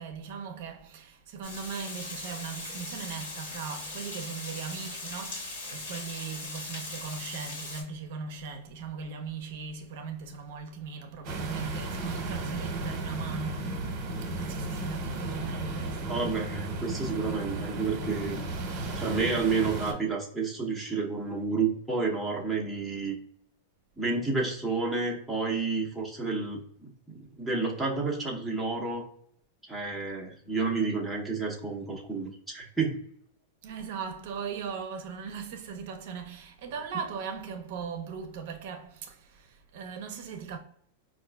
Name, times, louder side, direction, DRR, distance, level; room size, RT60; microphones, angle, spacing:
voice 1, 0.0-13.9 14.2-16.2 33.6-40.6, right 6 dB, 55° right, 0.5 m, -39 dB
Water, 1.4-7.8, left 3 dB, 75° left, 1.4 m, -39 dB
sound 1, 11.2-19.9, right 2 dB, 35° right, 0.9 m, -34 dB
voice 2, 16.1-18.4 19.0-23.2 24.0-29.1 29.7-33.0, right 4 dB, ahead, 0.6 m, -30 dB
4.7 x 2.4 x 2.2 m
supercardioid pair, 155°, 0 cm